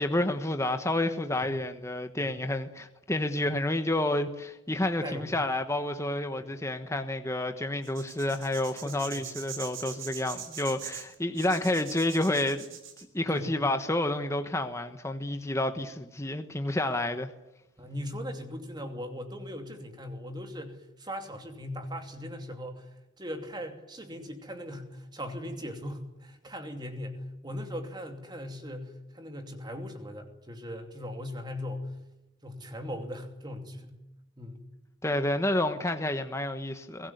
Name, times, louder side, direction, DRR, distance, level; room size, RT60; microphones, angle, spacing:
voice 1, 0.0-12.6 13.1-17.3 35.0-37.1, left 1 dB, 15° left, 1.2 m, -29 dB
voice 2, 5.0-5.4 6.4-6.5 8.8-9.3 13.3-13.6 17.8-32.0 32.4-34.0 34.4-34.6, equal, 20° right, 2.8 m, -39 dB
sound 1, 7.8-13.0, right 8 dB, 70° right, 4.2 m, -42 dB
22.5 x 18.0 x 9.5 m
head